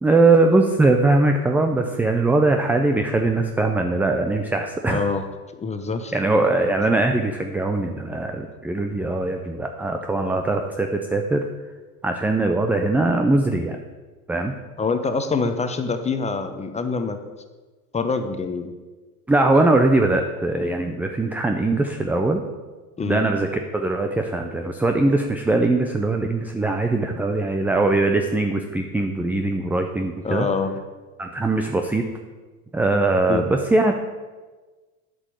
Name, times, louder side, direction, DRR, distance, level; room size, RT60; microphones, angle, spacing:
voice 1, 0.0-5.1 6.1-11.5 12.0-13.8 14.3-14.5 19.3-22.4 23.0-23.5 23.7-30.5 31.2-32.1 32.7-33.9, right 2 dB, 5° right, 4 dB, 0.3 m, -21 dB
voice 2, 4.9-5.2 5.6-6.1 14.8-17.2 17.9-18.7 23.0-23.2 30.2-30.7 33.3-33.5, left 4 dB, 15° left, 8 dB, 0.9 m, -25 dB
8.3 x 5.3 x 7.7 m, 1.3 s
hypercardioid pair, 100°, 43 cm